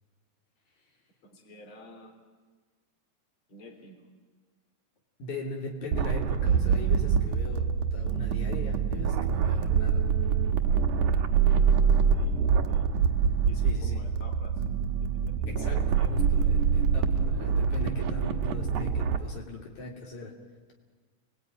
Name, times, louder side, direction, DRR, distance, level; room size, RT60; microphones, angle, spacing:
voice 1, 1.2-2.1 3.5-4.1 11.5-12.9 13.5-14.6 14.9-16.2, left 1 dB, 40° left, 4 dB, 4.1 m, -51 dB
voice 2, 5.2-10.1 13.6-14.0 15.5-20.3, left 2 dB, 65° left, 0 dB, 4.2 m, -40 dB
sound 1, 5.9-19.2, right 6 dB, 75° right, 2.6 m, -25 dB
29.5 x 21.5 x 9.3 m, 1.4 s
omnidirectional pair, 3.6 m